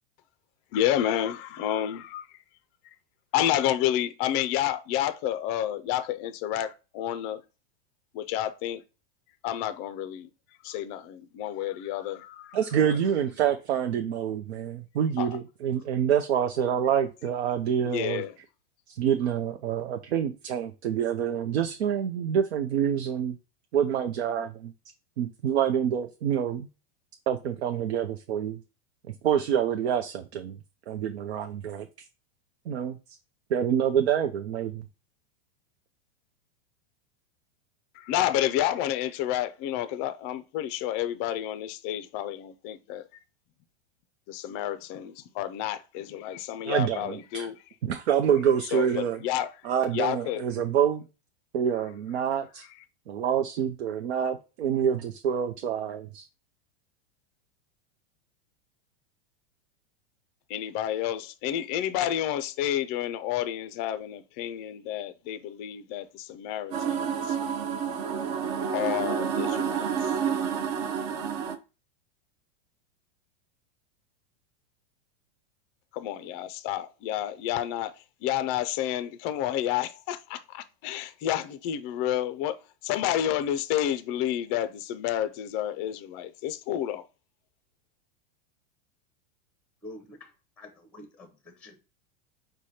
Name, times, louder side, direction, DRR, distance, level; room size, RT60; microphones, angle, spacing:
voice 1, 0.7-2.3 3.3-7.4 8.1-8.8 9.4-10.3 10.6-12.9 15.2-15.3 17.8-18.3 38.0-43.0 44.3-47.6 48.7-49.5 49.9-50.4 60.5-67.4 68.7-70.1 75.9-77.9 78.2-82.6 82.8-87.0, left 11 dB, 30° left, 0.4 m, -30 dB
voice 2, 12.5-18.2 18.9-23.4 23.7-24.7 25.2-26.7 27.3-28.6 29.1-30.6 30.9-31.9 32.7-33.0 33.5-34.8 46.6-47.5 47.8-49.2 49.6-51.1 51.5-52.6 53.1-56.2, right 8 dB, 90° right, 0.6 m, -27 dB
sound 1, 66.7-71.6, right 7 dB, 30° right, 0.4 m, -29 dB
voice 3, 89.8-91.9, left 1 dB, 5° left, 0.7 m, -47 dB
4.8 x 2.2 x 4.1 m
supercardioid pair, 150°, 32 cm